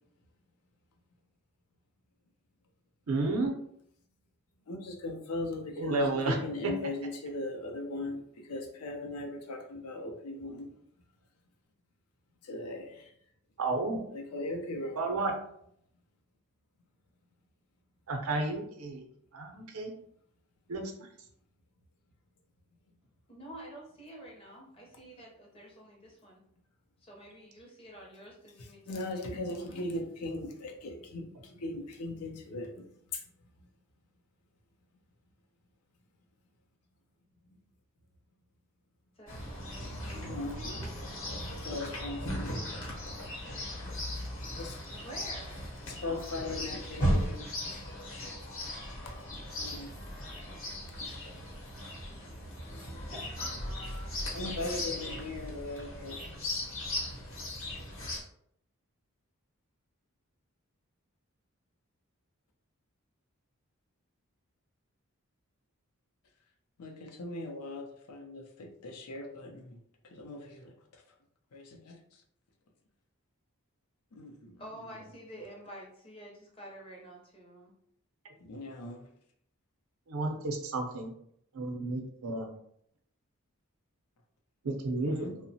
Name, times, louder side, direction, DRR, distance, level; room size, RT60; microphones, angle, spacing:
voice 1, 3.1-3.5 5.8-6.4 6.6-6.7 13.6-14.0 15.0-15.3 18.1-19.0 19.3-19.9 20.7-21.1 80.1-81.1 81.5-82.5 84.6-85.3, right 2 dB, 80° right, 0.6 m, -32 dB
voice 2, 4.7-10.8 12.4-13.1 14.1-15.0 28.6-32.8 33.1-33.2 37.5-37.6 40.1-40.7 41.4-42.6 43.0-43.2 44.6-44.8 45.9-47.5 49.5-49.9 51.8-51.9 54.3-56.3 66.8-71.0 71.5-72.0 74.1-75.0 78.4-79.1 85.1-85.4, left 2 dB, 90° left, 0.5 m, -39 dB
voice 3, 23.3-26.4 27.0-30.0 39.2-41.0 43.4-43.5 44.9-46.6 53.4-54.2 54.5-55.2 74.6-77.7, right 1 dB, 25° left, 0.6 m, -49 dB
Chirp tweet, 39.3-58.2, equal, 60° left, 0.8 m, -37 dB
2.8 x 2.1 x 2.7 m
head